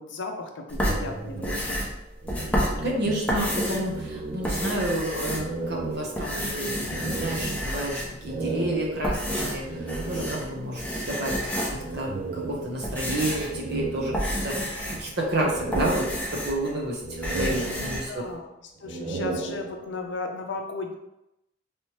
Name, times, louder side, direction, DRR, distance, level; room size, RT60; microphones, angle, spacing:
voice 1, 0.0-1.8 2.4-2.6 17.5-21.0, left 3 dB, 65° left, 3 dB, 0.5 m, -36 dB
sound 1, 0.7-3.9 4.3-5.8 6.1-8.3 8.8-10.5 10.8-12.0 12.5-16.7 17.0-18.0, equal, 5° left, 0.7 m, -30 dB
sound 2, 0.8-3.6 3.8-5.0 5.4-10.8 11.8-13.1 13.5-14.8 15.2-16.7 17.0-18.3 18.8-20.1, right 3 dB, 40° right, 0.5 m, -35 dB
voice 2, 2.8-18.2, right 1 dB, 60° right, -2 dB, 0.8 m, -30 dB
3.3 x 2.9 x 3.0 m, 0.90 s
head